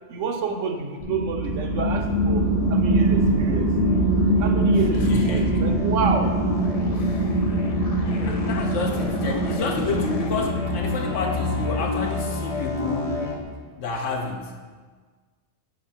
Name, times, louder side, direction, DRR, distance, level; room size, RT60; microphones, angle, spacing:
voice 1, 0.1-3.7 4.4-6.3, right 5 dB, 90° right, 5 dB, 1.1 m, -29 dB
sound 1, 1.0-13.1, right 1 dB, 30° right, 1.6 m, -23 dB
sound 2, 2.0-13.4, left 3 dB, 40° left, 0.6 m, -31 dB
voice 2, 4.9-5.7 6.9-7.5 8.3-13.2 13.8-14.5, left 4 dB, 80° left, 2 dB, 1.2 m, -30 dB
6.5 x 4.0 x 5.8 m, 1.5 s
omnidirectional pair, 1.3 m